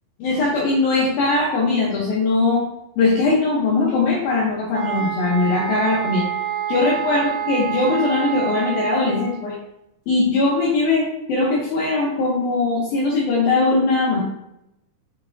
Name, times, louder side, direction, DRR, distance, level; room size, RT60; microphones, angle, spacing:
voice 1, 0.2-2.6 3.0-6.2 6.7-9.5 10.1-14.2, left 3 dB, 75° left, -6 dB, 2.2 m, -20 dB
sound 1, 4.7-9.4, right 10 dB, 60° right, 1.1 m, -27 dB
6.7 x 5.2 x 2.7 m, 0.83 s
omnidirectional pair, 5.5 m